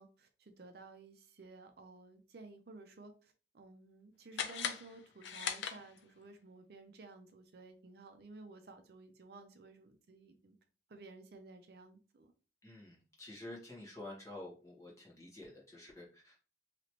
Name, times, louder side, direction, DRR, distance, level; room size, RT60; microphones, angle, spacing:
voice 1, 0.0-10.6 10.9-12.3, right 3 dB, 60° right, 6 dB, 0.5 m, -55 dB
sound 1, 4.3-6.3, left 7 dB, 85° left, 0.5 m, -40 dB
voice 2, 12.6-16.4, left 1 dB, 15° left, -3 dB, 1.3 m, -50 dB
3.1 x 2.9 x 2.9 m, 0.35 s
head